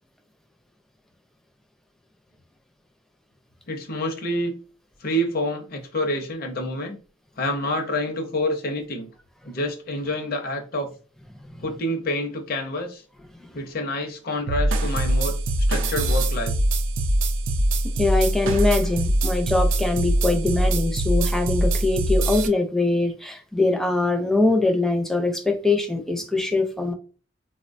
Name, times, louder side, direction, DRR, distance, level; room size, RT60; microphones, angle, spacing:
voice 1, 3.7-4.6 5.0-7.0 7.4-9.1 9.5-10.9 11.6-13.0 13.5-15.3 15.7-16.5, left 1 dB, 50° left, 0.6 m, -27 dB
sound 1, 14.5-22.5, right 1 dB, 80° right, 0.4 m, -23 dB
voice 2, 17.8-26.9, left 2 dB, ahead, 0.4 m, -23 dB
3.8 x 2.1 x 2.5 m
head